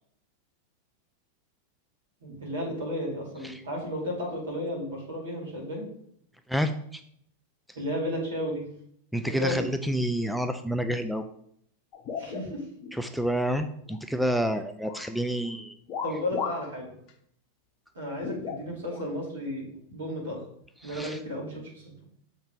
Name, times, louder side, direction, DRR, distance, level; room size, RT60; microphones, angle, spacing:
voice 1, 2.2-5.8 7.7-8.6 9.2-9.6 9.9-10.0 12.2-12.6 16.0-16.9 17.9-20.4 20.8-22.0, left 1 dB, 65° right, -3 dB, 2.8 m, -33 dB
voice 2, 6.5-7.0 9.1-11.2 12.9-15.7 20.8-21.2, equal, ahead, 8 dB, 0.4 m, -29 dB
sound 1, 11.9-13.0 13.4-14.5 14.8-15.1 15.9-16.7 17.1-17.2 18.2-19.1 19.9-20.0 20.9-21.1, left 6 dB, 40° left, 0.9 m, -36 dB
7.1 x 4.2 x 3.7 m, 0.68 s
figure-of-eight pair, 90°, 0 cm